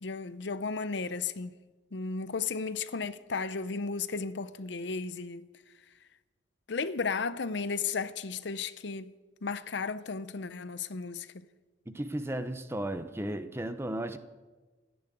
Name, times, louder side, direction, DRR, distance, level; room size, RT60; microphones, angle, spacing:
voice 1, 0.0-1.5 1.9-5.5 6.7-9.1 9.4-11.4, left 4 dB, 60° left, 0.6 m, -34 dB
voice 2, 11.9-14.2, right 1 dB, 15° right, 0.7 m, -35 dB
14.5 x 10.5 x 9.2 m
head